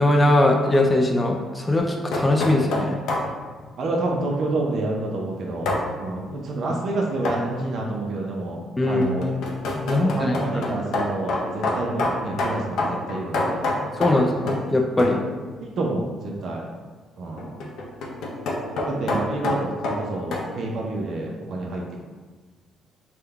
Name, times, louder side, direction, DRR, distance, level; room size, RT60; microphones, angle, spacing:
voice 1, 0.0-3.0 8.8-9.1 9.7-10.3 14.0-15.2, left 1 dB, 15° left, 1 dB, 0.3 m, -20 dB
sound 1, 1.8-3.3 5.7-5.9 7.3-7.5 8.8-14.7 15.0-15.3 17.4-20.5, left 2 dB, 80° left, 0.5 m, -27 dB
voice 2, 3.8-9.3 9.9-13.7 15.6-16.7 17.2-17.5 18.9-22.0, right 2 dB, 60° right, -1 dB, 0.5 m, -28 dB
3.6 x 2.2 x 3.4 m, 1.4 s
cardioid pair, 115°, 0 cm